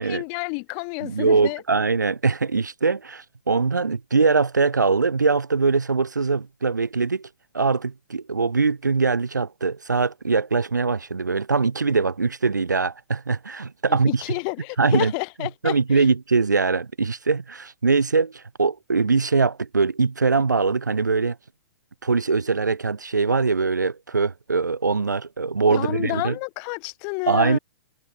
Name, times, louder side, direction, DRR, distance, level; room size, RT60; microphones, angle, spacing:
voice 1, 0.1-1.6 14.1-16.0 25.7-27.6, left 40 dB or more, 35° left, 0.7 m, -30 dB
voice 2, 1.0-7.3 7.5-14.2 14.8-15.1 15.4-21.4 22.0-26.4 27.3-27.6, right 4 dB, 85° right, 0.4 m, -22 dB
figure-of-eight pair, 110°, 10 cm